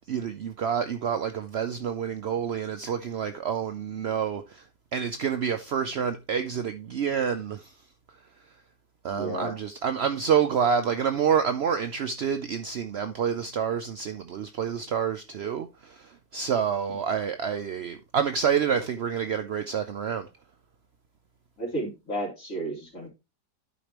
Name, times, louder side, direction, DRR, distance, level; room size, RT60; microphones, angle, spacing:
voice 1, 0.1-4.7 4.9-7.7 9.0-20.3, right 7 dB, 70° right, 0.6 m, -28 dB
voice 2, 9.1-9.5 21.6-23.1, right 1 dB, 50° left, 3.5 m, -32 dB
12.0 x 5.0 x 3.0 m
omnidirectional pair, 1.8 m